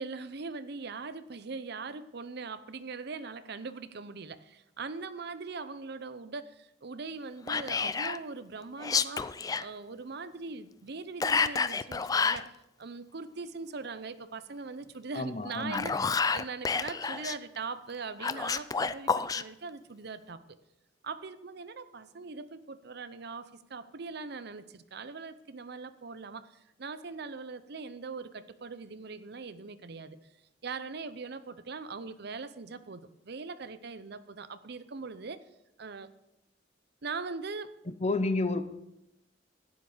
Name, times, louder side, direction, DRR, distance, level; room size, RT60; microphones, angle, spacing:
voice 1, 0.0-9.3 9.6-20.4 21.0-30.2 30.6-35.4 35.8-36.1 37.0-37.7, right 4 dB, 60° right, 12 dB, 0.7 m, -41 dB
Whispering, 7.5-8.2 8.8-9.6 11.2-12.5 15.5-17.4 18.2-19.4, left 5 dB, 20° left, 0.3 m, -29 dB
voice 2, 15.1-15.9 37.9-38.6, left 2 dB, 35° left, 11 dB, 0.8 m, -30 dB
11.5 x 9.5 x 5.0 m, 0.86 s
head